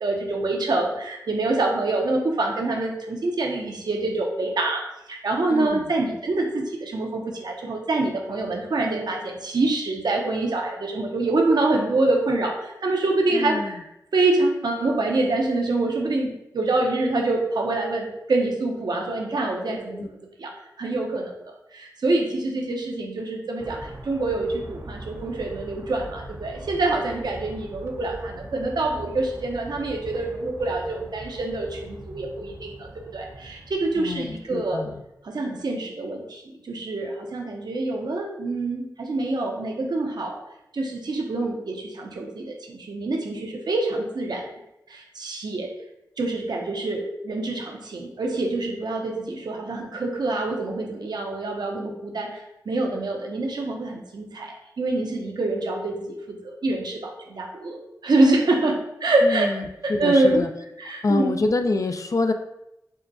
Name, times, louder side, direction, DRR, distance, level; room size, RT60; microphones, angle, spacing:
voice 1, 0.0-13.8 14.1-20.5 20.8-21.3 21.7-34.8 35.2-40.4 40.7-44.5 44.9-45.7 46.2-59.5 59.8-60.4 60.8-61.4, right 2 dB, 70° right, 1 dB, 0.8 m, -26 dB
voice 2, 5.5-5.8 13.3-13.8 19.7-20.1 34.0-34.9 59.2-59.6 59.9-60.5 61.0-62.3, left 3 dB, 50° left, 7 dB, 0.4 m, -26 dB
sound 1, 23.6-35.2, right 1 dB, 40° right, 0.5 m, -42 dB
6.4 x 2.2 x 2.7 m, 0.86 s
cardioid pair, 45°, 7 cm